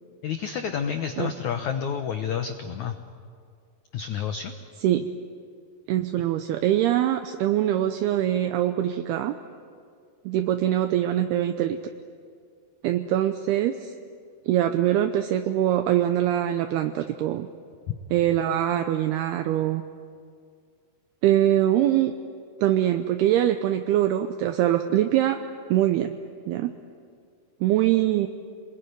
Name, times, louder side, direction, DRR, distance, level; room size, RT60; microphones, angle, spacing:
voice 1, 0.2-2.9 3.9-4.5, left 7 dB, 85° left, 6 dB, 1.6 m, -29 dB
voice 2, 5.9-9.4 10.3-11.8 12.8-13.9 14.5-17.5 18.1-19.8 21.2-22.2 22.6-25.4 25.7-26.1 26.5-26.7 27.6-28.3, right 12 dB, 75° right, 7 dB, 2.6 m, -23 dB
27.5 x 21.5 x 9.6 m, 2.2 s
omnidirectional pair, 5.0 m